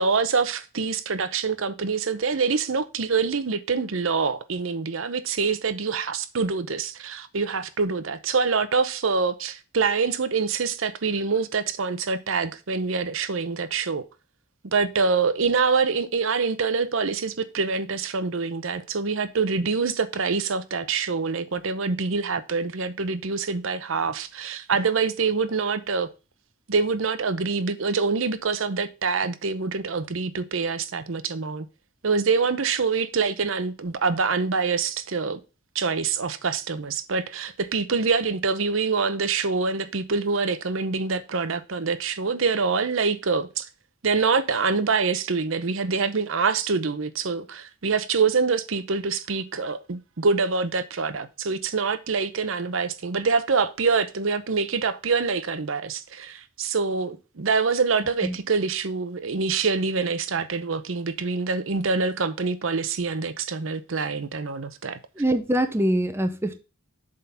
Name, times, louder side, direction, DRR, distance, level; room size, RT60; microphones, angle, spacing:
voice 1, 0.0-14.1 14.6-26.1 26.7-31.7 32.0-35.4 35.7-43.7 44.0-65.0, right 4 dB, 70° right, 0.7 m, -25 dB
voice 2, 65.2-66.6, right 1 dB, 10° right, 0.6 m, -23 dB
7.6 x 3.8 x 5.8 m
head